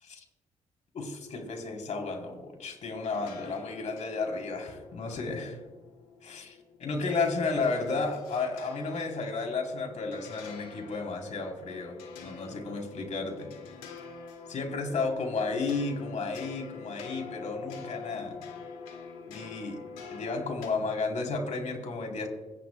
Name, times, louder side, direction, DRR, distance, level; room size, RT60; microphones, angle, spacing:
voice 1, 0.9-5.6 6.2-13.5 14.5-18.4 19.3-19.8 20.1-22.3, left 3 dB, 65° left, 2 dB, 3.3 m, -33 dB
sound 1, 3.0-20.7, left 5 dB, 90° left, 2.2 m, -47 dB
25.5 x 11.0 x 2.2 m, 1.2 s
supercardioid pair, 50°, 13 cm